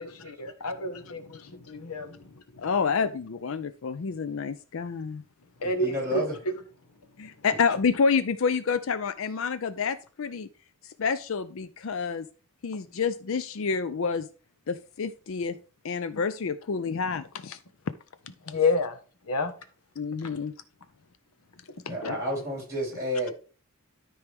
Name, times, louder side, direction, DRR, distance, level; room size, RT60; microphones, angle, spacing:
voice 1, 0.0-2.3 5.6-6.2 18.5-19.0 19.3-19.5 20.2-20.3 21.9-22.2, left 2 dB, 90° left, 1.2 m, -29 dB
voice 2, 2.6-5.2 7.2-10.5 10.8-12.3 12.6-14.3 14.7-15.6 15.8-17.6 20.0-20.5, left 5 dB, 60° left, 0.5 m, -28 dB
voice 3, 5.6-6.3 21.9-23.3, equal, 15° right, 4.5 m, -30 dB
13.0 x 4.7 x 3.5 m
head